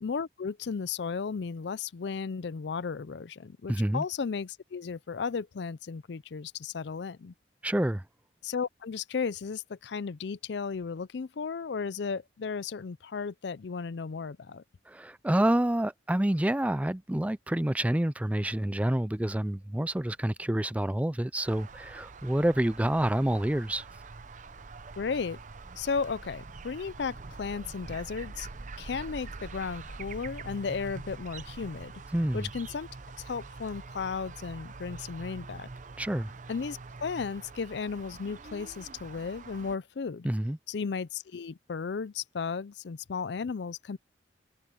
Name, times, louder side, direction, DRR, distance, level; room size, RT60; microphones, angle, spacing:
voice 1, 0.0-7.3 8.4-14.6 25.0-25.4 25.8-28.5 28.8-31.9 32.3-32.9 33.2-35.7 36.5-40.3 40.7-44.0, left 5 dB, 65° left, 0.5 m, -35 dB
voice 2, 3.7-4.0 7.6-8.0 14.9-23.9 32.1-32.5 36.0-36.3 40.2-40.6, right 1 dB, 10° right, 0.4 m, -28 dB
sound 1, 19.1-39.0, equal, 70° right, 3.8 m, -64 dB
sound 2, 21.4-39.8, right 3 dB, 45° right, 0.7 m, -45 dB
head